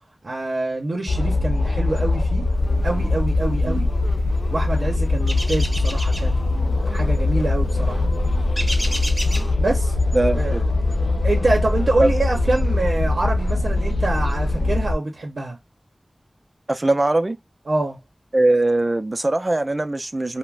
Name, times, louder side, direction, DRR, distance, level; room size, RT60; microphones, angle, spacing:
voice 1, 0.2-2.5 2.8-3.9 4.5-8.0 9.6-9.9 10.4-10.6 11.2-15.6 17.7-18.0, right 2 dB, 90° right, 0.6 m, -25 dB
sound 1, 1.1-14.9, left 2 dB, 85° left, 0.3 m, -21 dB
sound 2, 5.3-6.3 8.6-9.5, equal, 10° right, 0.7 m, -30 dB
voice 2, 10.1-10.6 12.0-12.1 16.7-17.4 18.3-20.4, right 2 dB, 40° right, 0.4 m, -20 dB
2.3 x 2.1 x 3.1 m
wide cardioid pair, 65°, 0 cm